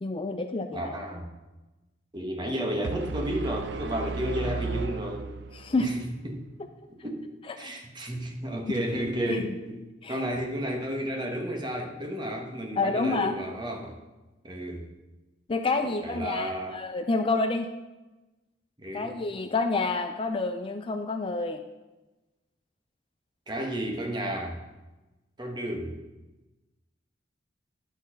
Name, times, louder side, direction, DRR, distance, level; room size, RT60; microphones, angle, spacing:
voice 1, 0.0-0.9 5.5-5.9 7.5-7.7 9.3-9.5 10.0-10.2 12.8-13.4 15.5-17.7 18.9-21.6, left 3 dB, 25° left, 6 dB, 0.4 m, -28 dB
voice 2, 0.7-1.3 2.1-5.3 5.8-6.4 7.0-9.8 10.1-14.0 14.4-14.8 16.0-16.8 18.8-19.1 23.5-24.6 25.4-25.9, equal, 25° right, 2 dB, 1.2 m, -32 dB
sound 1, 2.8-5.9, right 4 dB, 60° right, 0.4 m, -34 dB
10.5 x 4.2 x 6.0 m, 1.1 s
head